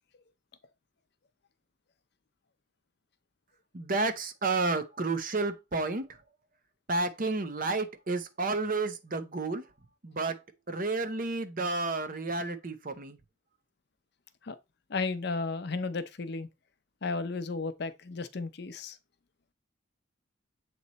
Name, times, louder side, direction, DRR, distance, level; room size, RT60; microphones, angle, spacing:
voice 1, 3.7-6.1 6.9-9.6 10.0-10.4 10.7-13.2, right 3 dB, 45° right, 0.7 m, -31 dB
voice 2, 14.9-16.5 17.0-19.0, left 3 dB, 55° left, 0.6 m, -34 dB
7.7 x 3.1 x 4.0 m
head